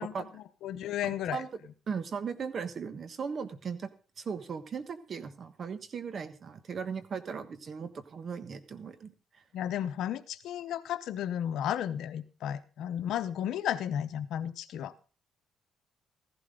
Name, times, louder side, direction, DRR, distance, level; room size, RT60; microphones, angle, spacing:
voice 1, 0.0-1.4 9.5-14.9, left 10 dB, 80° left, 13 dB, 0.8 m, -34 dB
voice 2, 1.9-3.9 4.2-9.1, right 6 dB, 50° right, 12 dB, 1.3 m, -37 dB
15.0 x 11.5 x 3.8 m, 0.36 s
cardioid pair, 90°, 0 cm